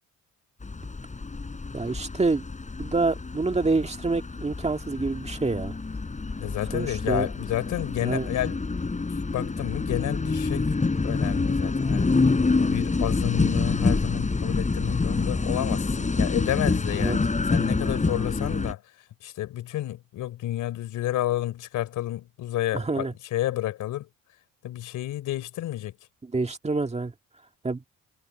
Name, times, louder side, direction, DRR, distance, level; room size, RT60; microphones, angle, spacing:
sound 1, 0.6-18.7, left 3 dB, 25° left, 4.3 m, -27 dB
voice 1, 1.7-2.4 2.8-5.7 6.7-7.3 8.0-8.3 17.0-17.2 22.7-23.1 26.2-27.1 27.6-27.8, right 3 dB, 20° right, 2.0 m, -27 dB
voice 2, 6.4-8.6 9.3-10.7 11.0-12.1 12.6-18.8 19.2-24.1 24.6-25.9, left 13 dB, 85° left, 3.8 m, -30 dB
cardioid pair, 90°, 30 cm